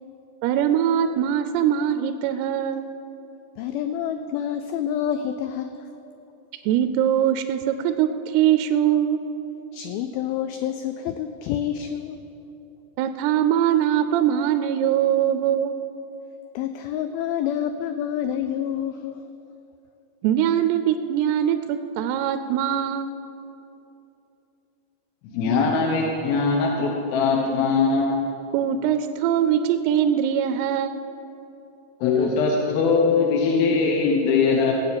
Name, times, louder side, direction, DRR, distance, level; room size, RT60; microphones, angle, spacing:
voice 1, 0.4-2.9 6.7-9.2 13.0-15.7 20.2-23.1 28.5-31.0, right 10 dB, 80° right, 9 dB, 2.5 m, -22 dB
voice 2, 3.6-5.9 9.7-12.2 16.6-19.2, left 9 dB, 90° left, 9 dB, 2.1 m, -28 dB
voice 3, 25.3-28.2 32.0-34.7, left 4 dB, 70° left, 0 dB, 2.7 m, -21 dB
16.5 x 6.9 x 8.5 m, 2.9 s
omnidirectional pair, 4.8 m